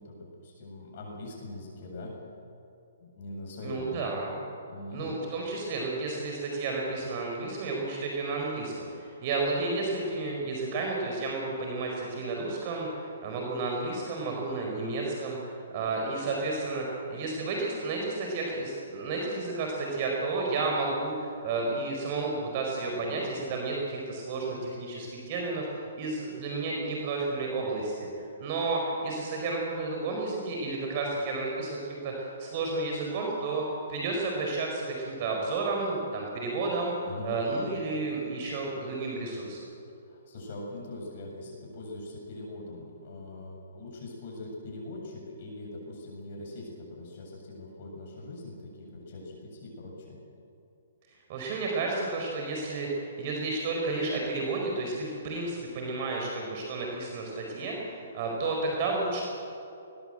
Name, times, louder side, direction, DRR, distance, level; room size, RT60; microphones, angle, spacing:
voice 1, 0.0-2.1 3.0-4.1 4.7-5.1 37.0-37.4 40.1-50.2, left 2 dB, 50° left, -1 dB, 7.5 m, -42 dB
voice 2, 3.6-4.3 4.9-28.1 28.4-33.6 33.9-36.9 37.2-39.6 51.3-59.2, right 3 dB, 40° right, 0 dB, 4.9 m, -32 dB
20.5 x 19.0 x 7.9 m, 2.7 s
hypercardioid pair, 145°, 0 cm